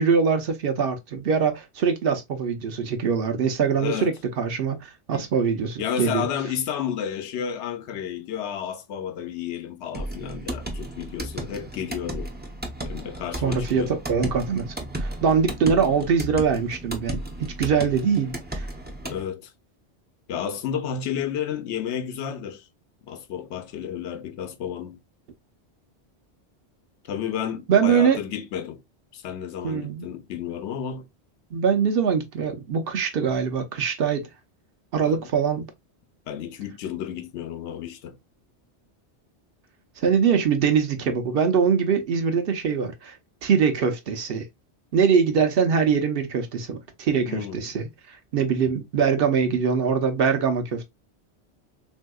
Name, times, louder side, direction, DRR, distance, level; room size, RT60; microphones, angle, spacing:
voice 1, 0.0-6.3 13.4-18.7 27.7-28.2 29.6-30.0 31.5-34.3 34.9-35.7 40.0-43.2 43.4-44.5 44.9-47.9 48.3-50.9, right 6 dB, 60° right, 0.7 m, -23 dB
voice 2, 3.7-4.1 5.1-5.2 5.8-12.3 12.8-14.0 19.0-19.5 20.3-22.7 23.1-25.0 27.0-28.8 29.1-31.1 35.0-35.3 36.3-38.2 47.3-47.7, left 8 dB, 80° left, 0.9 m, -31 dB
sound 1, 9.9-19.2, right 1 dB, 15° right, 0.3 m, -34 dB
3.5 x 2.7 x 2.2 m
omnidirectional pair, 1.1 m